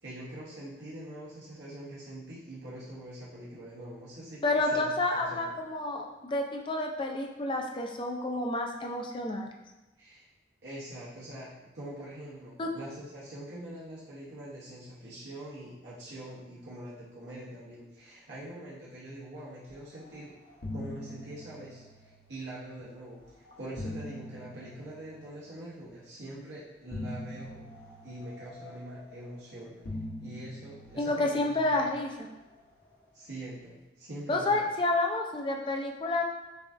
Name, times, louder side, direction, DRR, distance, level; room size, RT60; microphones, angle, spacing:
voice 1, 0.0-5.6 10.0-10.3 10.6-20.3 20.7-23.3 23.6-27.7 28.0-29.8 30.2-31.9 33.1-34.7, right 1 dB, 75° right, -9 dB, 0.8 m, -44 dB
voice 2, 4.4-9.5 12.6-12.7 31.0-32.1 34.3-36.2, left 2 dB, 25° left, 2 dB, 0.4 m, -29 dB
sound 1, 20.0-20.2 20.5-22.8 23.5-25.9 26.9-29.4 29.8-32.4, left 1 dB, 50° left, 0.8 m, -43 dB
6.6 x 2.4 x 2.5 m, 1.0 s
head